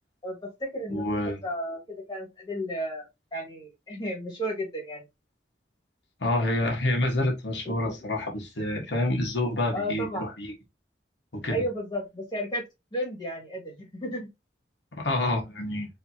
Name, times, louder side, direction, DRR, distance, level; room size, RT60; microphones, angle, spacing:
voice 1, 0.2-3.1 3.3-5.0 7.6-7.9 9.7-10.3 11.5-12.6 12.9-14.3, equal, 25° left, 1.9 m, -33 dB
voice 2, 0.9-1.4 6.2-10.5 11.3-11.6 14.9-15.9, left 1 dB, 85° left, 1.5 m, -28 dB
4.6 x 3.2 x 2.8 m
head